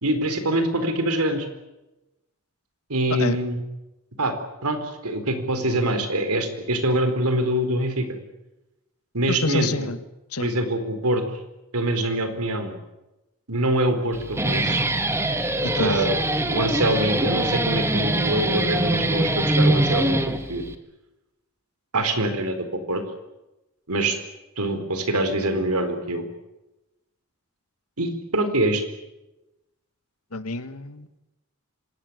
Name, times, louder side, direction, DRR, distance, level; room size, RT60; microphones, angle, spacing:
voice 1, 0.0-1.5 2.9-3.6 4.2-4.4 4.6-8.1 9.1-9.9 10.4-11.2 11.7-12.7 13.5-14.8 15.8-16.2 16.5-20.6 21.9-23.0 23.9-24.2 24.6-26.2 28.0-28.8, right 1 dB, 85° right, 8 dB, 4.3 m, -24 dB
voice 2, 9.4-10.0 10.3-10.5 15.6-16.0 30.3-31.1, left 3 dB, 85° left, 11 dB, 1.6 m, -27 dB
Guitar, 14.1-20.7, right 1 dB, 10° right, 1.7 m, -23 dB
26.0 x 19.0 x 9.7 m, 1.0 s
head